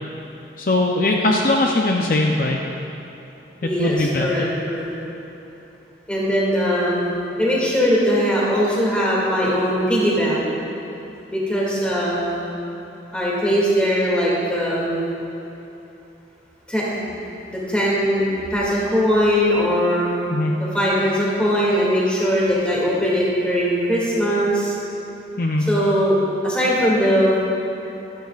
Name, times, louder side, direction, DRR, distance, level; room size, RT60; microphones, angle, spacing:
voice 1, 0.6-2.6 3.6-4.5 20.3-20.5 25.4-25.7, left 2 dB, 50° left, 0 dB, 0.6 m, -20 dB
voice 2, 3.6-4.9 6.1-7.1 7.4-10.5 11.3-12.4 13.1-15.1 16.7-17.1 17.5-20.1 20.6-24.7 25.7-27.4, equal, 5° left, -6 dB, 2.3 m, -20 dB
15.0 x 13.5 x 2.5 m, 3.0 s
head